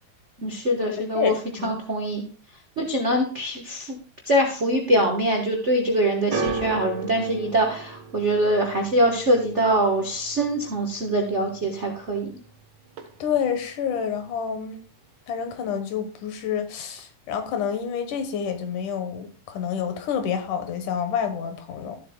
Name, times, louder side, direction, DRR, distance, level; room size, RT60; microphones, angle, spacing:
voice 1, 0.4-1.3 1.6-2.3 2.8-4.0 4.2-12.3, right 1 dB, 85° right, 1 dB, 0.6 m, -23 dB
voice 2, 1.1-1.8 13.2-14.8 15.3-22.0, left 7 dB, 85° left, 7 dB, 2.7 m, -28 dB
sound 1, 6.3-12.6 12.8-13.5 14.2-14.3, right 5 dB, 60° right, 1.1 m, -35 dB
14.5 x 7.8 x 2.3 m, 0.40 s
omnidirectional pair, 3.5 m